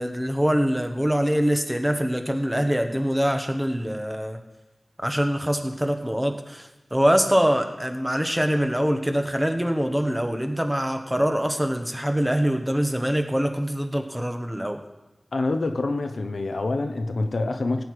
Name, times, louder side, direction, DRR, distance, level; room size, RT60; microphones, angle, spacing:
voice 1, 0.0-4.4 5.0-14.8, equal, 10° right, 5 dB, 1.2 m, -24 dB
voice 2, 15.3-17.8, left 2 dB, 80° left, 7 dB, 0.8 m, -26 dB
17.5 x 7.9 x 4.8 m, 1.0 s
wide cardioid pair, 65°, 0 cm